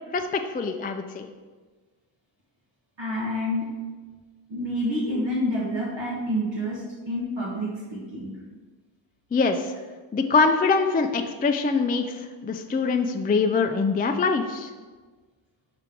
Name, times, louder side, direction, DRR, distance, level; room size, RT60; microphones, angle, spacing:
voice 1, 0.1-1.3 9.3-9.7 10.1-14.7, left 4 dB, 20° left, 5 dB, 0.3 m, -24 dB
voice 2, 3.0-3.7 4.5-8.4, equal, 70° right, -5 dB, 1.5 m, -28 dB
5.7 x 3.8 x 5.9 m, 1.4 s
wide cardioid pair, 120°, 45 cm